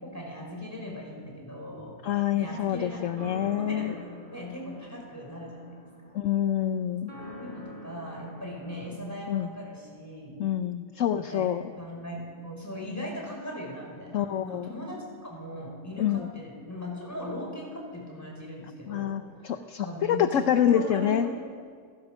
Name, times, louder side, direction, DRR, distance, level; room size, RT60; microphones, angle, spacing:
voice 1, 0.1-1.9 2.3-3.0 3.4-4.0 4.3-5.8 6.0-6.1 7.4-10.4 11.1-11.5 11.8-19.5 19.8-21.4, left 1 dB, 10° left, -1 dB, 5.3 m, -39 dB
voice 2, 2.0-3.9 6.1-7.1 9.3-9.5 10.4-11.6 14.1-14.7 16.0-16.3 18.9-21.3, left 10 dB, 60° left, 9 dB, 1.0 m, -26 dB
sound 1, 2.4-8.9, equal, 30° right, 4.4 m, -45 dB
29.5 x 15.5 x 6.3 m, 2.1 s
omnidirectional pair, 1.6 m